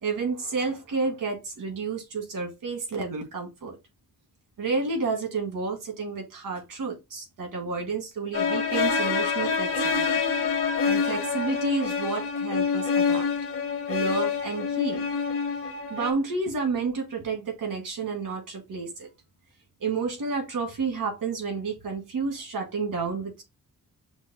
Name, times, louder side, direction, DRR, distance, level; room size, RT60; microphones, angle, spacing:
voice 1, 0.0-3.8 4.6-10.1 10.9-13.3 13.9-15.0 15.9-19.1 19.8-23.4, right 4 dB, 85° right, 1.8 m, -30 dB
sound 1, 8.3-16.1, left 5 dB, 45° left, 0.8 m, -26 dB
6.0 x 2.2 x 4.0 m
wide cardioid pair, 170°, 32 cm